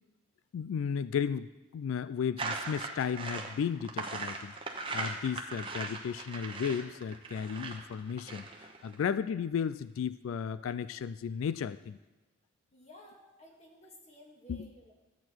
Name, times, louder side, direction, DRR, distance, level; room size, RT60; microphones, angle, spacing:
voice 1, 0.5-12.0 14.5-14.7, left 7 dB, 85° left, 14 dB, 0.3 m, -34 dB
sound 1, 2.4-9.0, right 3 dB, 25° right, 0.9 m, -39 dB
voice 2, 12.7-14.9, equal, 35° left, -1 dB, 1.9 m, -55 dB
13.0 x 8.4 x 4.5 m, 1.1 s
head